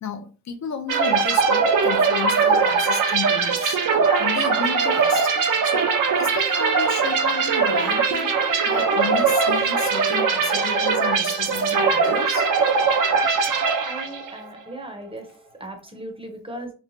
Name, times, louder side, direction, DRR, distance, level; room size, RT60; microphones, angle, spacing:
voice 1, 0.0-3.8 4.2-5.3 5.6-5.9 6.2-8.3 8.7-12.5, left 7 dB, 60° left, 0.4 m, -33 dB
sound 1, 0.9-14.4, right 5 dB, 80° right, 0.5 m, -21 dB
voice 2, 13.8-16.7, right 1 dB, 20° right, 0.6 m, -37 dB
3.1 x 2.1 x 2.5 m
wide cardioid pair, 130°, 31 cm